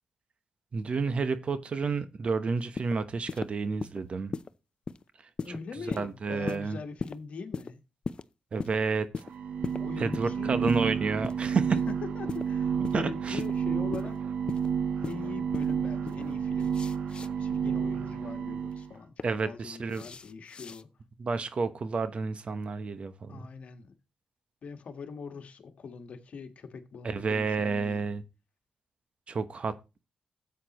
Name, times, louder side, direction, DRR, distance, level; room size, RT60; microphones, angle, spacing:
voice 1, 0.7-4.3 5.9-6.8 8.5-9.1 10.0-11.8 12.9-13.4 19.2-20.0 21.2-23.4 27.0-28.2 29.3-29.7, right 4 dB, 55° right, 1.0 m, -30 dB
sound 1, 2.6-3.0 3.3-3.5 3.8-4.0 4.3-4.5 4.9-5.0 5.4-5.6 5.9-6.1 6.5-6.6 7.0-7.2 7.5-7.7 8.0-8.2 8.6-8.8 9.1-9.3 9.6-9.8 10.1-10.3 10.7-10.9 11.2-11.4 11.8-11.9 12.3-12.4 12.8-13.0 13.4-13.5 13.9-14.1 14.5-14.7 15.0-15.2 15.5-15.7 16.1-16.2 16.6-17.3 18.7-19.2 19.9-20.8, left 4 dB, 45° left, 0.6 m, -37 dB
voice 2, 5.4-7.8 9.8-10.7 11.9-14.2 15.0-16.7 17.4-20.9 23.3-24.0 24.6-28.0, left 5 dB, 65° left, 1.5 m, -42 dB
sound 2, 9.2-18.9, right 7 dB, 75° right, 1.2 m, -31 dB
13.0 x 8.3 x 3.0 m
cardioid pair, 65°, 2 cm